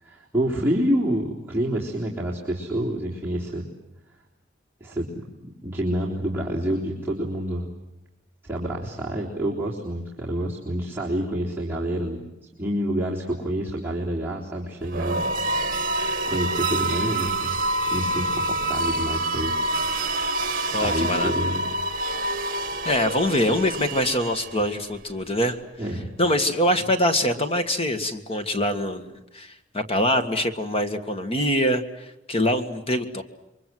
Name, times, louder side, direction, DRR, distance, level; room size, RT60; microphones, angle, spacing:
voice 1, 0.0-3.7 4.8-7.7 8.5-12.3 12.6-15.9 16.3-17.5 17.8-19.7 20.7-21.6 25.8-26.1 26.8-26.9, right 1 dB, 10° right, -6 dB, 3.7 m, -28 dB
sound 1, 14.8-24.8, right 2 dB, 50° right, 1.7 m, -27 dB
voice 2, 20.7-21.6 22.8-25.6 26.2-33.2, left 1 dB, 30° left, 7 dB, 1.8 m, -24 dB
28.5 x 23.5 x 7.9 m, 0.93 s
head